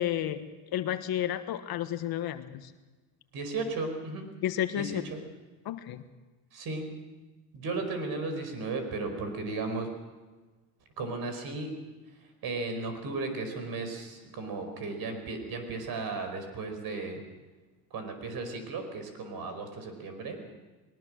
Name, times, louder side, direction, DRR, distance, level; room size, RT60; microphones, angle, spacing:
voice 1, 0.0-2.7 4.4-5.0 5.6-6.0, left 11 dB, 55° left, 9 dB, 1.4 m, -31 dB
voice 2, 3.3-4.3 4.7-5.2 6.5-6.9 7.5-9.9 11.0-11.8 12.4-17.2 17.9-20.4, right 3 dB, 50° right, 7 dB, 5.0 m, -35 dB
21.0 x 19.5 x 6.4 m, 1.2 s
supercardioid pair, 100°, 44 cm